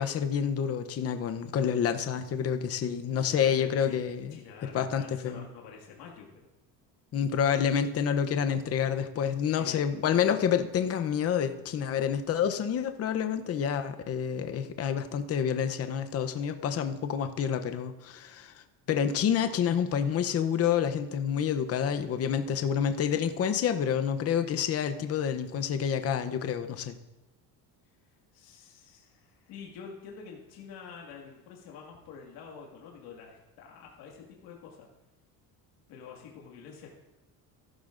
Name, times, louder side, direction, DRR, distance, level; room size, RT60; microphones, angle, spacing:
voice 1, 0.0-4.4 4.7-5.4 7.1-27.0, left 8 dB, 35° left, 8 dB, 0.7 m, -28 dB
voice 2, 3.0-4.0 4.3-6.5 9.4-10.0 27.9-34.9 35.9-36.9, left 6 dB, 85° left, -1 dB, 2.0 m, -48 dB
14.5 x 11.5 x 2.5 m, 1.0 s
cardioid pair, 135°, 41 cm